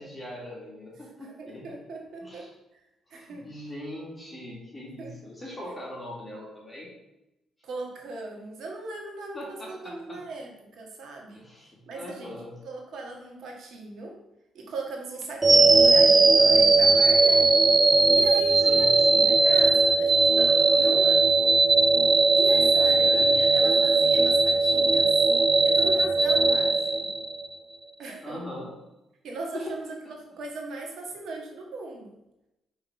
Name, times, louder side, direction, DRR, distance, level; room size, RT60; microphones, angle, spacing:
voice 1, 0.0-1.6 2.2-2.5 3.1-6.9 9.3-10.2 11.3-12.5 15.5-15.9 18.6-19.3 22.8-23.5 28.2-28.7 29.5-29.7, left 1 dB, 20° left, -4 dB, 1.8 m, -41 dB
voice 2, 1.2-2.5 2.7-2.8 3.1-3.4 5.0-5.1 7.6-11.5 11.9-12.4 12.6-14.1 14.5-17.5 18.1-21.4 22.3-25.2 25.6-27.1 28.0-28.4 29.2-32.1, right 3 dB, 70° right, 0 dB, 1.4 m, -38 dB
sound 1, 15.4-27.6, right 3 dB, 25° right, 0.4 m, -19 dB
5.5 x 3.5 x 5.5 m, 0.92 s
cardioid pair, 90°, 0 cm